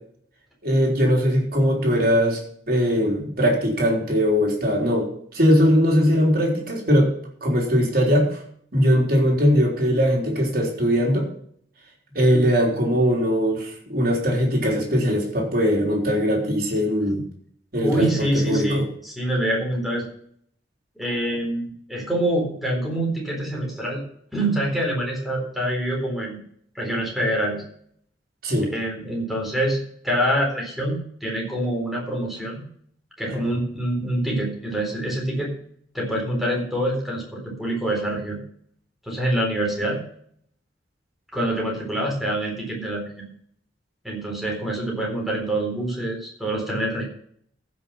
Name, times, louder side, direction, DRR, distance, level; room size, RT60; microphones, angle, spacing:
voice 1, 0.6-2.4 2.7-5.1 5.3-7.1 7.4-8.4 8.7-11.3 12.1-17.2 17.7-18.9 28.4-28.7 33.3-33.4, equal, 50° right, -1 dB, 3.8 m, -20 dB
voice 2, 17.8-20.1 21.0-24.0 24.3-26.4 26.8-27.6 28.6-29.8 30.0-32.6 33.2-35.5 35.9-38.4 39.1-40.0 41.3-43.3 44.0-47.0, right 1 dB, ahead, -2 dB, 4.0 m, -25 dB
15.0 x 6.5 x 5.7 m, 0.63 s
head